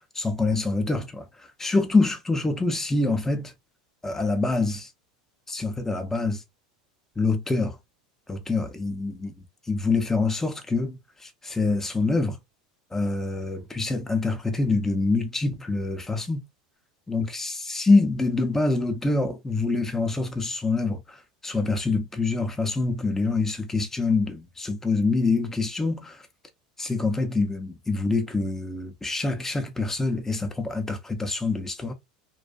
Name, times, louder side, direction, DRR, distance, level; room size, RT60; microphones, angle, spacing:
voice 1, 0.1-3.5 4.0-4.9 5.5-6.4 7.2-7.8 8.3-9.3 9.7-12.4 12.9-16.4 17.1-26.2 26.8-31.9, left 3 dB, 10° left, 0.5 m, -25 dB
2.5 x 2.3 x 2.2 m
hypercardioid pair, 90°, 4 cm